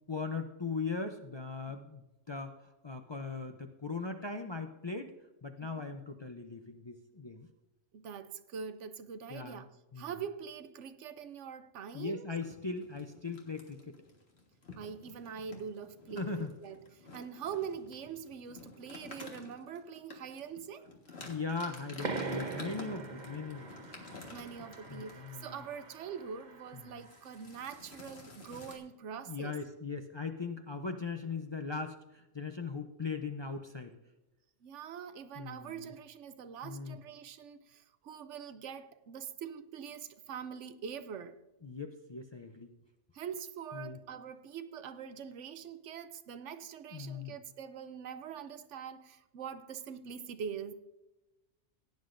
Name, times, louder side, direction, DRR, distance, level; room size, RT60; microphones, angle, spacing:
voice 1, 0.1-5.1 5.4-7.5 9.3-9.7 9.9-10.1 11.9-14.0 16.2-16.5 21.2-23.7 24.9-25.6 26.7-27.0 29.3-34.0 35.4-35.9 36.6-37.0 41.6-42.7 43.7-44.0 46.9-47.3, left 4 dB, 35° left, 0.5 m, -39 dB
voice 2, 7.9-9.7 10.0-12.3 14.8-20.9 24.3-29.6 34.6-41.4 43.1-50.7, right 7 dB, 85° right, 1.0 m, -43 dB
sound 1, 12.4-25.6 26.0-26.2 26.4-26.7 27.0-28.8, left 3 dB, 60° left, 1.9 m, -51 dB
sound 2, 22.0-27.2, right 4 dB, 40° right, 1.0 m, -42 dB
17.0 x 9.6 x 2.6 m
omnidirectional pair, 1.2 m